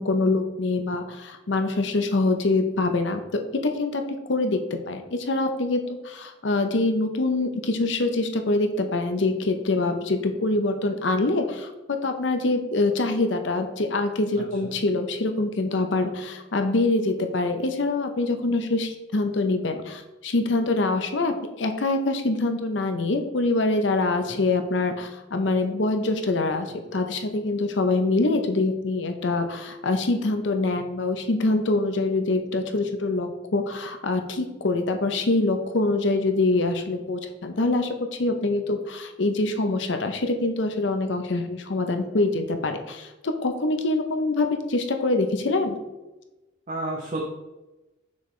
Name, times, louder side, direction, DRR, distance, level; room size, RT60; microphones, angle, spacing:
voice 1, 0.0-4.0 4.3-45.8, left 2 dB, 65° left, 6 dB, 0.7 m, -25 dB
voice 2, 46.7-47.2, right 2 dB, 40° right, -2 dB, 0.7 m, -31 dB
6.3 x 5.5 x 3.2 m, 1.1 s
head